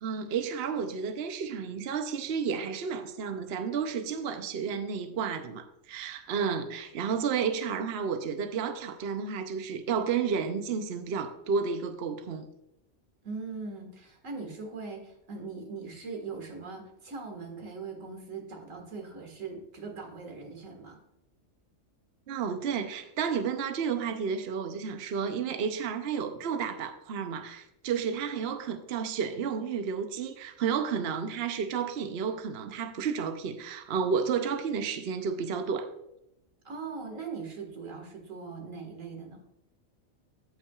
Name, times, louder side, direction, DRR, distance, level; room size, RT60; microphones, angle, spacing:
voice 1, 0.0-12.5 22.3-35.9, right 6 dB, 60° right, 0.8 m, -31 dB
voice 2, 13.2-21.0 36.6-39.4, right 4 dB, 85° right, 2.1 m, -40 dB
16.5 x 5.8 x 2.3 m
omnidirectional pair, 1.3 m